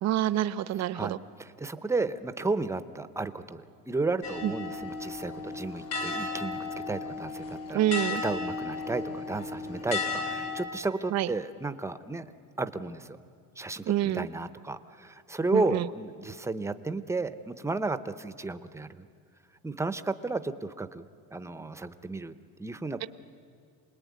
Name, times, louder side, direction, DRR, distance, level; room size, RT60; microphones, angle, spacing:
voice 1, 0.0-1.2 4.4-4.5 7.7-8.2 11.1-11.3 13.9-14.3 15.5-15.9 23.0-23.1, right 12 dB, 50° right, 14 dB, 0.8 m, -27 dB
voice 2, 0.9-7.8 8.2-12.3 12.6-13.2 13.6-19.1 19.6-21.0 21.3-22.3 22.6-23.1, right 3 dB, 10° right, 12 dB, 0.7 m, -33 dB
sound 1, 4.2-10.7, left 4 dB, 75° left, 3.6 m, -34 dB
28.0 x 20.5 x 9.5 m, 2.3 s
cardioid pair, 150°, 34 cm